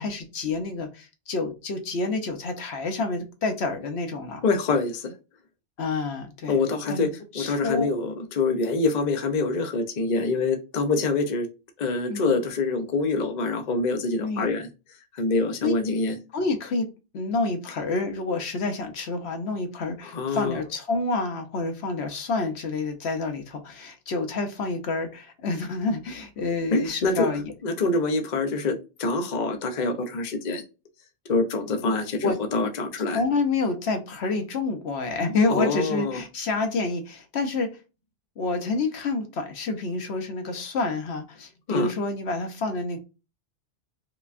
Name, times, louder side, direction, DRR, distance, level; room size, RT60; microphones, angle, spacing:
voice 1, 0.0-4.4 5.8-6.6 6.9-7.9 12.1-12.4 14.2-14.5 15.6-15.7 16.3-16.9 17.1-27.5 31.8-32.4 33.1-37.7 38.4-43.0, left 3 dB, 65° left, 1.0 m, -28 dB
voice 2, 4.4-5.1 6.5-7.1 7.3-11.5 11.8-14.7 15.1-16.2 20.1-20.6 26.7-27.3 27.6-30.6 31.3-33.2 35.5-36.2 41.7-41.9, left 3 dB, 45° left, 0.7 m, -25 dB
4.9 x 2.3 x 2.4 m
omnidirectional pair, 1.2 m